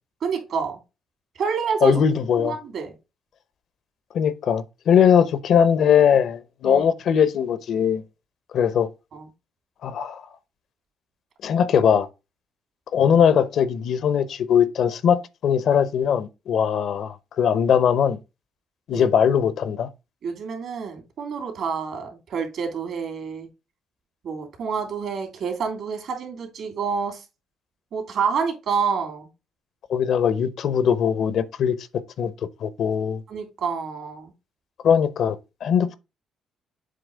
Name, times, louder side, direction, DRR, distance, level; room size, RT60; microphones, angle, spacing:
voice 1, 0.2-0.8 1.4-1.9 2.4-2.9 6.6-6.9 9.1-9.3 18.9-19.0 20.2-23.5 24.2-27.2 27.9-29.3 33.3-34.3, right 6 dB, 70° right, 2.7 m, -28 dB
voice 2, 1.8-2.6 4.1-8.0 8.5-8.9 9.8-10.2 11.4-12.1 12.9-18.2 18.9-19.9 29.9-31.8 32.2-32.3 32.6-33.2 34.8-36.0, left 8 dB, 70° left, 0.7 m, -20 dB
7.7 x 3.1 x 5.0 m
cardioid pair, 90°, 0 cm